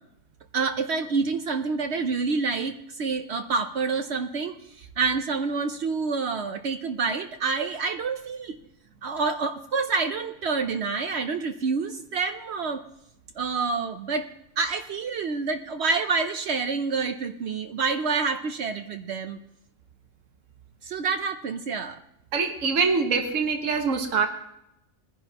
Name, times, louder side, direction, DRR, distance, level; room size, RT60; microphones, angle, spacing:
voice 1, 0.5-8.6 9.0-12.8 13.4-14.3 14.6-19.4 20.8-22.0, right 4 dB, 65° right, 7 dB, 0.9 m, -28 dB
voice 2, 22.3-24.3, right 5 dB, 85° right, 4 dB, 1.6 m, -24 dB
21.0 x 10.5 x 2.9 m, 0.82 s
omnidirectional pair, 1.3 m